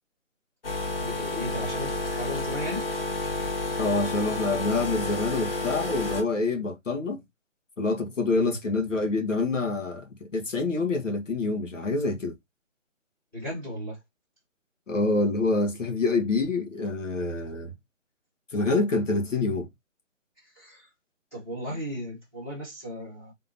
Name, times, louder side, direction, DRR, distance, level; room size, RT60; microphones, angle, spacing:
sound 1, 0.6-6.2, left 2 dB, 45° left, 1.7 m, -30 dB
voice 1, 1.0-2.8 8.3-8.6 13.3-14.0 20.5-20.9 21.3-23.3, equal, 10° left, 1.0 m, -35 dB
voice 2, 3.8-7.2 7.8-12.3 14.9-17.7 18.5-19.7, left 3 dB, 75° left, 1.7 m, -26 dB
4.0 x 3.6 x 2.7 m
figure-of-eight pair, 155°, 38 cm